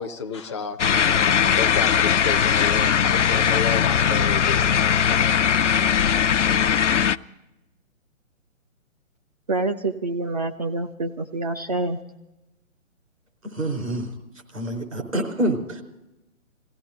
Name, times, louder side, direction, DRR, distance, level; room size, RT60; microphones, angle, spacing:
voice 1, 0.0-4.7 5.1-5.3, left 5 dB, 20° left, 0.6 m, -31 dB
sound 1, 0.8-7.2, left 8 dB, 65° left, 0.5 m, -20 dB
voice 2, 9.5-12.0, right 3 dB, 30° right, 0.5 m, -26 dB
voice 3, 13.4-14.1 14.5-15.8, right 1 dB, 75° right, 4.8 m, -27 dB
21.5 x 16.5 x 3.8 m
figure-of-eight pair, 135°, 39 cm